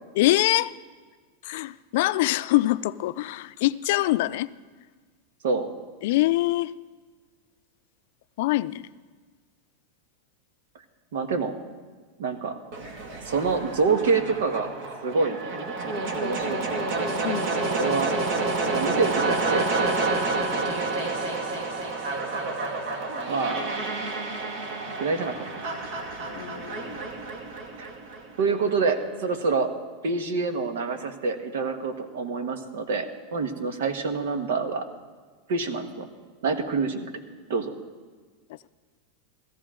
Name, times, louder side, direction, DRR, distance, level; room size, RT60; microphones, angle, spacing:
voice 1, 0.2-0.7 1.4-4.5 6.0-6.7 8.4-8.8 17.2-17.5 20.5-20.7 26.3-27.0, left 17 dB, 65° left, 15 dB, 0.4 m, -24 dB
voice 2, 11.1-11.5 12.2-12.5 13.2-14.7 15.0-15.4 16.2-16.9 17.7-18.1 18.7-20.1 23.3-23.8 25.0-25.6 27.8-27.9 28.4-29.7 30.0-34.9 35.5-36.1 36.4-37.1 37.5-37.7, right 4 dB, 80° right, 8 dB, 1.3 m, -27 dB
sound 1, 12.7-28.7, right 3 dB, 60° right, 2.0 m, -29 dB
17.5 x 14.0 x 3.8 m, 1.5 s
supercardioid pair, 130°, 0 cm